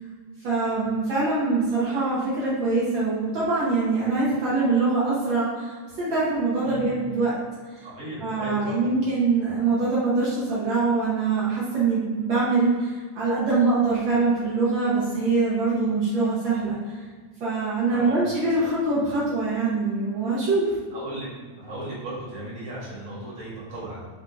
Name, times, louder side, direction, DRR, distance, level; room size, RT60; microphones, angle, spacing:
voice 1, 0.4-7.4 7.7-7.9 8.2-17.1 17.4-20.7, right 3 dB, 90° right, -9 dB, 1.0 m, -24 dB
voice 2, 6.6-7.0 7.8-8.8 17.9-18.2 18.6-18.7 20.9-21.3 21.5-24.0, right 1 dB, 50° right, -8 dB, 1.0 m, -36 dB
4.3 x 3.7 x 2.5 m, 1.5 s
omnidirectional pair, 3.5 m